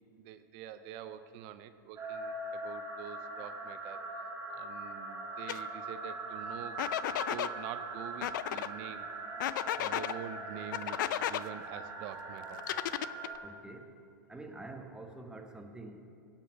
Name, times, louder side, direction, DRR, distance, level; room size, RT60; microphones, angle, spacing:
voice 1, 0.2-4.1 4.5-6.8 7.3-9.1 9.8-12.6, right 10 dB, 45° right, 11 dB, 0.5 m, -46 dB
sound 1, 2.0-13.4, right 2 dB, 25° right, 2.2 m, -41 dB
sound 2, 5.5-5.6 6.8-7.5 8.2-8.7 9.4-10.1 10.7-11.4 12.6-13.4, left 13 dB, 65° left, 0.4 m, -33 dB
voice 2, 13.4-13.9 14.3-16.1, right 2 dB, 5° right, 4 dB, 1.1 m, -46 dB
17.0 x 5.8 x 6.0 m, 2.4 s
hypercardioid pair, 100°, 11 cm